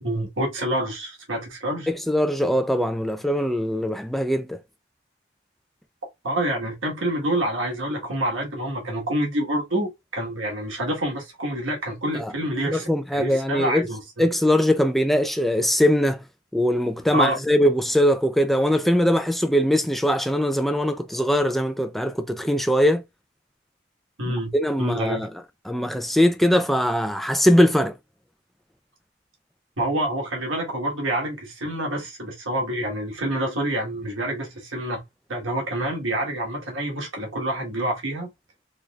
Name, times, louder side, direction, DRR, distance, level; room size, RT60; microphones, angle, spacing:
voice 1, 0.0-1.9 6.2-14.3 17.1-17.4 24.2-25.3 29.8-35.0 35.3-38.3, right 1 dB, 85° right, 1.4 m, -27 dB
voice 2, 1.9-4.6 12.2-12.3 12.6-13.9 14.2-16.2 16.5-23.0 24.3-25.3 25.7-27.9, equal, ahead, 0.3 m, -21 dB
3.9 x 3.2 x 2.3 m
head